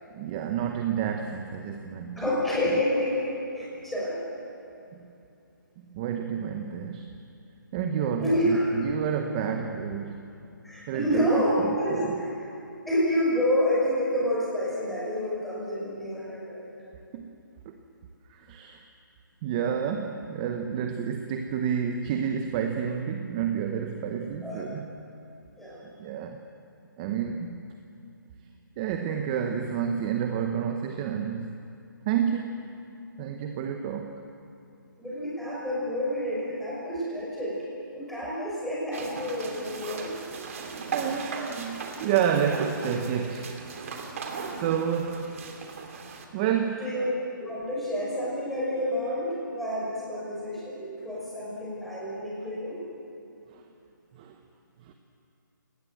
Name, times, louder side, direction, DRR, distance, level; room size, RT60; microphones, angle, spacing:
voice 1, 0.1-2.2 4.9-5.1 5.8-7.1 7.7-10.3 10.9-11.3 11.6-12.2 17.1-17.4 17.6-17.7 18.3-18.8 19.4-24.9 26.0-26.4 27.0-27.6 28.8-31.6 32.1-32.7 33.2-34.2 40.9-43.6 44.5-45.3 46.3-46.9 53.5-53.6 54.1-54.4 54.8-54.9, right 8 dB, 20° right, 5 dB, 0.9 m, -30 dB
voice 2, 2.2-3.3 3.5-4.2 8.2-8.6 10.6-12.3 12.9-16.7 24.4-24.6 25.6-25.8 35.0-40.2 46.7-47.1 47.4-52.8, equal, ahead, -7 dB, 5.8 m, -28 dB
sound 1, 38.9-46.2, right 5 dB, 40° right, 2.8 m, -37 dB
28.5 x 19.0 x 7.8 m, 2.7 s
hypercardioid pair, 165°, 11 cm